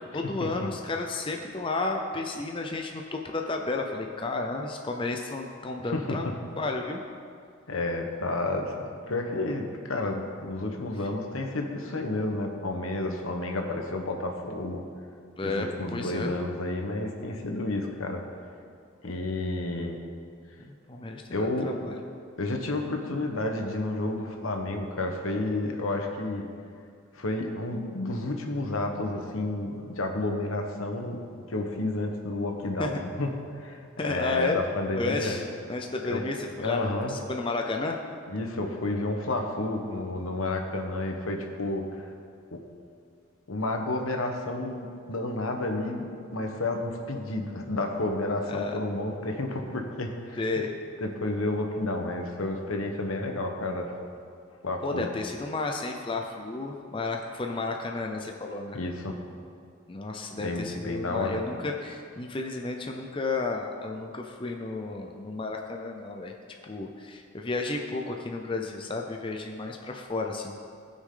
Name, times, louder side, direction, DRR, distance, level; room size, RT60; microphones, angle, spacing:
voice 1, 0.1-7.0 15.4-16.3 19.0-19.1 20.7-22.0 32.8-33.0 34.0-34.6 35.0-35.4 35.7-38.0 48.4-48.8 50.4-50.7 54.8-58.8 59.9-66.3 66.7-70.6, left 3 dB, 25° left, 2 dB, 0.5 m, -32 dB
voice 2, 7.7-8.8 9.1-14.8 15.4-18.2 19.0-20.0 21.3-22.0 22.4-26.5 27.1-31.2 31.5-33.3 33.6-35.4 36.0-36.2 36.6-37.1 38.3-42.1 42.5-42.6 43.5-50.4 51.0-53.9 54.6-55.1 58.7-59.2 60.4-61.6, left 2 dB, 75° left, 3 dB, 1.2 m, -31 dB
18.5 x 6.3 x 3.8 m, 2.3 s
head